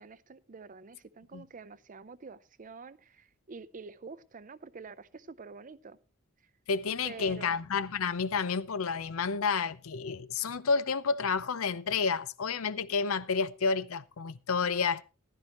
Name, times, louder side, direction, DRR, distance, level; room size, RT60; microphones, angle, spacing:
voice 1, 0.0-6.0 7.0-7.6, right 4 dB, 40° right, 0.6 m, -47 dB
voice 2, 6.7-15.0, left 5 dB, 70° left, 0.6 m, -30 dB
15.0 x 12.0 x 3.0 m
head